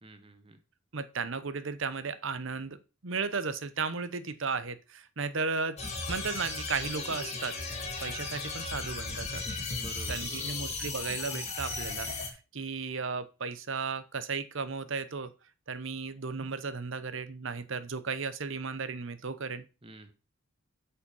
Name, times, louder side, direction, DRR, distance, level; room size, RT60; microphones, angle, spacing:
voice 1, 0.0-0.6 9.7-10.7 19.8-20.1, right 2 dB, 25° right, 9 dB, 0.9 m, -49 dB
voice 2, 0.9-5.8 6.1-7.6 8.0-9.4 10.1-15.3 15.7-19.6, right 4 dB, 60° right, 13 dB, 0.8 m, -35 dB
sound 1, 5.8-12.3, left 3 dB, 30° left, 1.7 m, -36 dB
8.2 x 5.7 x 5.5 m, 0.33 s
head